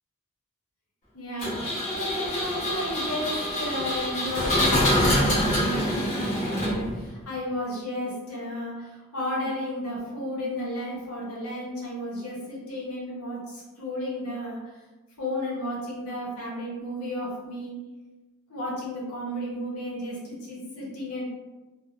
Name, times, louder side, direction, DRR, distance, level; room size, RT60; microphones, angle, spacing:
voice 1, 1.1-14.6 15.2-17.7 18.5-21.2, left 1 dB, 80° left, -5 dB, 0.8 m, -33 dB
Engine, 1.4-7.1, left 1 dB, 35° left, 0.9 m, -25 dB
2.6 x 2.1 x 2.4 m, 1.2 s
head